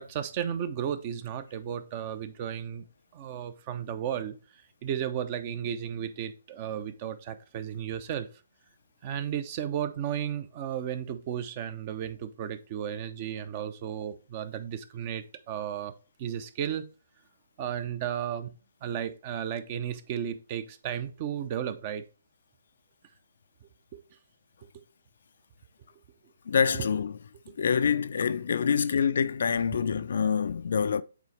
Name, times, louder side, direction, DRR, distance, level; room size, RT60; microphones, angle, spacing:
voice 1, 0.0-2.9 3.1-8.3 9.0-15.9 16.2-16.9 17.6-18.5 18.8-22.0 23.9-24.0 26.7-26.9 28.7-28.8, right 9 dB, 35° right, 0.7 m, -34 dB
voice 2, 26.5-27.1 27.6-31.0, left 6 dB, 55° left, 0.4 m, -26 dB
8.4 x 4.1 x 3.3 m
figure-of-eight pair, 135°, 0 cm